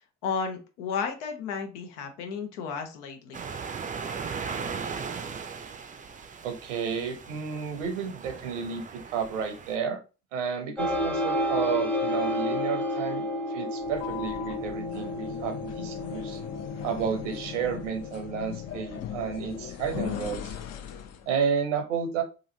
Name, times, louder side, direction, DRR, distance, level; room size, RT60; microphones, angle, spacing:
voice 1, 0.2-3.4, left 6 dB, 75° left, 5 dB, 0.8 m, -33 dB
sound 1, 3.3-9.8, right 5 dB, 20° right, 0.5 m, -38 dB
voice 2, 6.4-8.8 9.1-10.0 10.3-16.4 16.8-20.5 21.3-22.2, right 6 dB, 85° right, 6 dB, 0.8 m, -31 dB
sound 2, 10.8-20.0, left 1 dB, 5° left, 0.8 m, -32 dB
sound 3, 13.8-21.3, left 10 dB, 45° left, 0.6 m, -38 dB
2.9 x 2.5 x 2.7 m, 0.32 s
hypercardioid pair, 55°, 35 cm